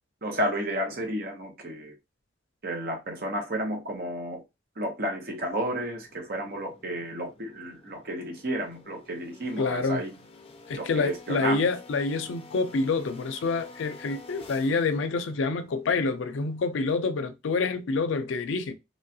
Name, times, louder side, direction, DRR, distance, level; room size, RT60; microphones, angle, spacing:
voice 1, 0.2-1.9 2.6-4.4 4.8-10.1 10.7-11.7, right 1 dB, 50° right, 0.9 m, -32 dB
sound 1, 5.3-17.2, left 2 dB, 30° left, 0.4 m, -51 dB
voice 2, 9.6-10.0 10.7-18.7, left 4 dB, 90° left, 0.4 m, -27 dB
3.1 x 2.3 x 2.7 m
head